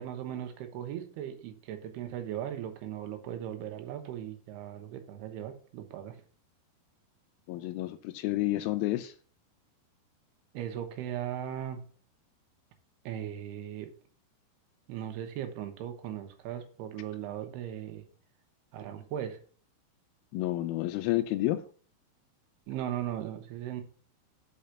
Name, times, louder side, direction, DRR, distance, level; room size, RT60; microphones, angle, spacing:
voice 1, 0.0-6.2 10.5-11.8 13.1-13.9 14.9-18.1 18.7-19.4 22.7-23.8, right 10 dB, 80° right, 3.0 m, -38 dB
voice 2, 7.5-9.1 20.3-21.6, left 16 dB, 85° left, 2.1 m, -30 dB
5.8 x 5.6 x 6.6 m
omnidirectional pair, 4.7 m